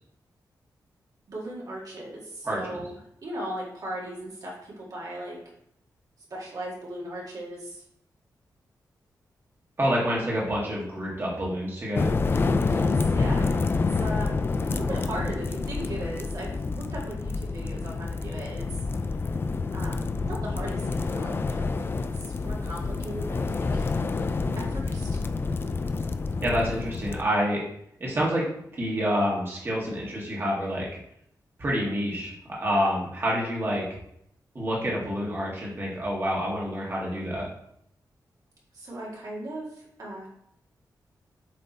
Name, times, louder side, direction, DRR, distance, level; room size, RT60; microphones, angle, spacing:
voice 1, 1.3-5.4 6.3-7.8 12.6-13.5 13.9-18.8 19.7-21.7 22.0-23.9 24.5-25.2 38.7-40.3, right 1 dB, 60° right, -4 dB, 1.9 m, -37 dB
voice 2, 2.4-2.8 9.8-12.1 13.4-13.5 26.4-27.6 28.0-28.4 28.7-30.9 31.6-33.8 34.5-37.4, equal, 35° right, -4 dB, 1.7 m, -27 dB
sound 1, 12.0-27.2, left 4 dB, 30° left, 0.4 m, -28 dB
7.8 x 3.4 x 4.1 m, 0.75 s
wide cardioid pair, 130°, 7 cm